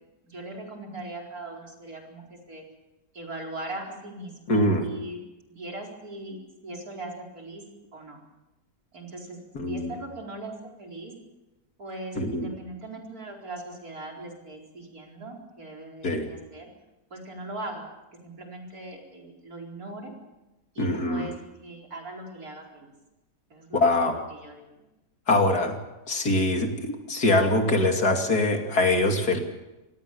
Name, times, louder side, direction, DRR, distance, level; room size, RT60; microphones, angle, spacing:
voice 1, 0.2-2.6 3.1-5.2 5.5-7.6 7.9-8.2 8.9-9.4 9.7-11.1 11.8-16.7 17.1-17.8 18.2-20.1 20.7-21.4 21.6-22.9 23.5-24.8, right 2 dB, 60° right, 0 dB, 4.9 m, -40 dB
voice 2, 4.5-4.9 9.5-9.9 12.2-12.5 16.0-16.3 20.8-21.3 23.7-24.2 25.3-25.7 26.1-29.4, left 2 dB, 65° left, 4 dB, 3.1 m, -23 dB
27.0 x 18.0 x 7.0 m, 1.0 s
omnidirectional pair, 1.7 m